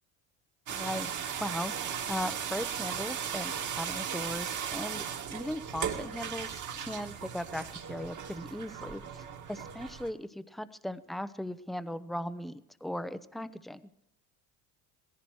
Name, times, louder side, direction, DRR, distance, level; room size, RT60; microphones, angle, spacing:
voice 1, 0.7-1.1 1.4-5.0 5.3-13.8, left 1 dB, ahead, 14 dB, 0.7 m, -38 dB
sound 1, 0.7-10.1, right 8 dB, 45° right, 2.0 m, -37 dB
17.0 x 15.0 x 4.7 m, 0.80 s
supercardioid pair, 100°, 43 cm